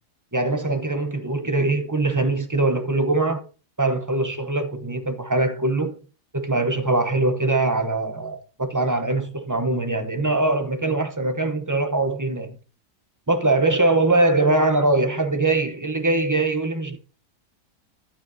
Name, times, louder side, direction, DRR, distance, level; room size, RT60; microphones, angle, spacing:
voice 1, 0.3-3.4 3.8-6.0 6.3-12.6 13.3-17.0, right 2 dB, 20° right, 0.6 m, -22 dB
11.5 x 9.1 x 2.7 m
omnidirectional pair, 1.7 m